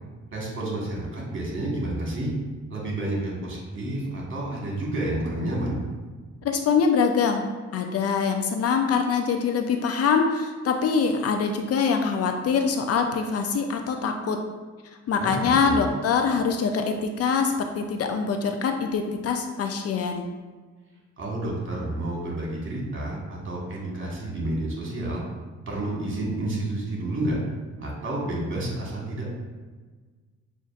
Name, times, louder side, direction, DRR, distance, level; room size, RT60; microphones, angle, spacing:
voice 1, 0.3-2.3 2.7-5.8 15.2-15.9 21.2-25.2 25.7-27.4 27.8-29.3, right 1 dB, 40° right, -3 dB, 1.4 m, -30 dB
voice 2, 6.4-7.5 7.7-14.4 15.1-20.3, left 5 dB, 55° left, 5 dB, 0.4 m, -24 dB
6.3 x 2.5 x 2.4 m, 1.4 s
cardioid pair, 90°, 30 cm